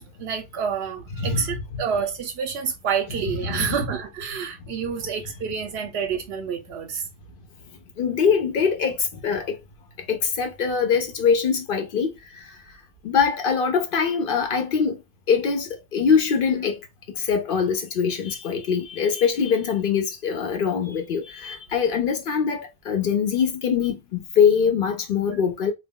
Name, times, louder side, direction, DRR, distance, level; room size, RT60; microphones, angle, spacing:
voice 1, 0.0-7.0, right 6 dB, 85° right, 0.8 m, -28 dB
voice 2, 3.4-3.7 8.0-9.0 9.2-9.5 10.1-12.1 13.0-15.0 15.3-16.8 17.2-25.7, left 6 dB, 65° left, 0.7 m, -23 dB
2.2 x 2.2 x 3.4 m
omnidirectional pair, 1.1 m